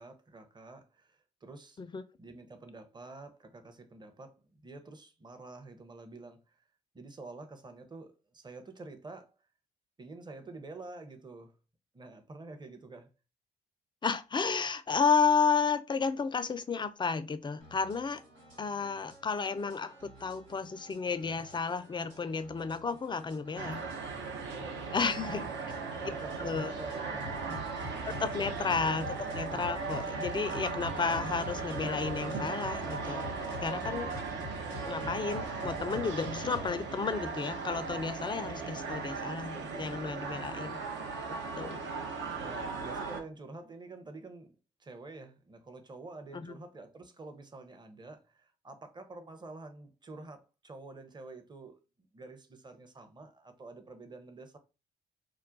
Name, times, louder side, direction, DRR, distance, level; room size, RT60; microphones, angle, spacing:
voice 1, 0.0-1.8 2.2-4.4 4.6-6.6 6.9-9.3 10.0-11.6 11.9-13.1 23.6-23.9 24.5-27.9 42.3-44.5 44.8-54.6, right 3 dB, 20° right, 0.7 m, -48 dB
voice 2, 14.0-18.2 18.6-23.8 24.9-25.5 26.4-26.7 28.0-29.1 29.3-33.2 33.6-34.1 34.9-40.8 41.6-41.9 46.3-46.6, left 5 dB, 20° left, 0.4 m, -32 dB
sound 1, 17.6-36.8, left 1 dB, 85° right, 1.4 m, -48 dB
sound 2, 23.6-43.2, right 4 dB, 65° right, 0.7 m, -37 dB
2.3 x 2.2 x 3.8 m
hypercardioid pair, 45°, 21 cm